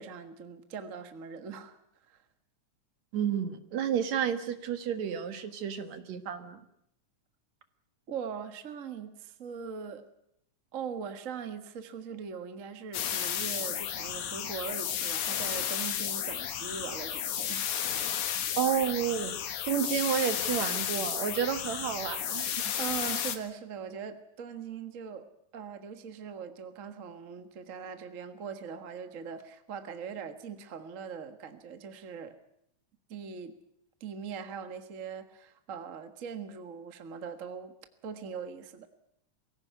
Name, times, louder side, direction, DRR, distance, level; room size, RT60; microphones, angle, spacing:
voice 1, 0.0-1.8 2.1-2.2 8.1-10.0 10.7-18.4 22.8-25.2 25.5-32.4 33.1-33.6 34.0-37.7 38.0-38.9, right 6 dB, 40° right, 8 dB, 1.1 m, -41 dB
voice 2, 3.1-6.6 18.6-22.8, right 8 dB, 65° right, 9 dB, 2.6 m, -31 dB
Leap Bounce Sound Effect, 12.9-23.4, left 9 dB, 70° left, 2.8 m, -33 dB
23.5 x 16.0 x 9.4 m, 0.76 s
omnidirectional pair, 3.7 m